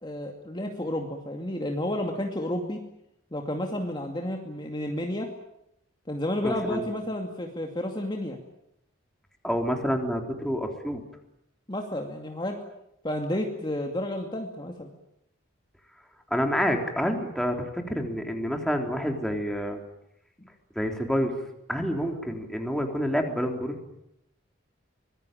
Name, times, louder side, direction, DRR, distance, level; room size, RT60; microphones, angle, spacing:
voice 1, 0.0-2.8 3.3-5.3 6.1-8.4 11.7-12.6 13.0-14.9, left 1 dB, 25° left, 2 dB, 2.4 m, -31 dB
voice 2, 6.4-6.9 9.4-11.0 16.3-19.8 20.8-21.3 21.7-23.8, equal, 5° left, 3 dB, 3.4 m, -28 dB
25.0 x 21.0 x 9.0 m, 0.81 s
head